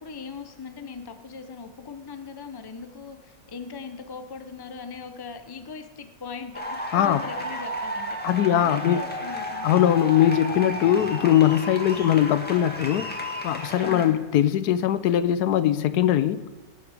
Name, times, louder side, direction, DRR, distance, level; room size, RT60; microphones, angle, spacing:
voice 1, 0.0-6.5 6.9-9.7 13.8-14.2, left 5 dB, 40° left, 8 dB, 0.3 m, -39 dB
sound 1, 6.5-14.1, equal, 5° left, 1.5 m, -33 dB
voice 2, 8.2-9.0 9.6-13.1 13.4-16.4, left 11 dB, 75° left, 14 dB, 1.0 m, -21 dB
18.0 x 7.8 x 4.9 m, 1.2 s
omnidirectional pair, 1.9 m